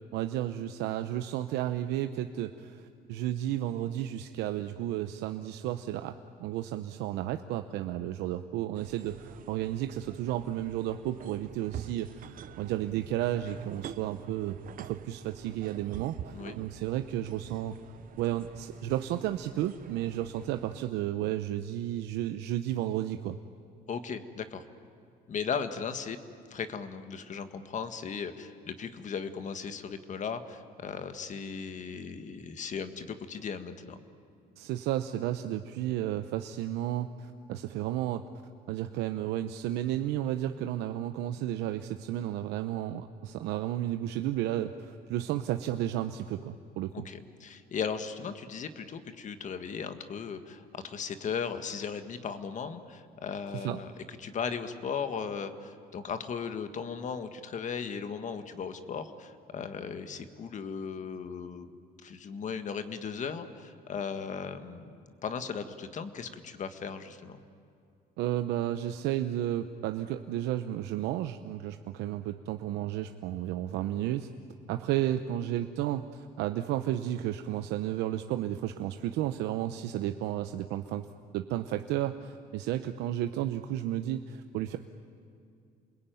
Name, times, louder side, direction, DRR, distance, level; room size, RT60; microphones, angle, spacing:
voice 1, 0.1-17.7 18.2-23.4 34.6-38.3 38.7-47.1 53.5-53.8 68.2-74.3 74.7-81.1 81.3-84.8, right 12 dB, 90° right, 8 dB, 0.9 m, -32 dB
sound 1, 8.7-20.9, right 10 dB, 55° right, 0.8 m, -47 dB
voice 2, 23.9-24.6 25.3-26.2 26.5-34.0 46.9-61.7 62.0-64.9 65.2-67.4, left 6 dB, 45° left, 9 dB, 1.8 m, -37 dB
28.5 x 21.0 x 9.3 m, 2.5 s
cardioid pair, 110°, 17 cm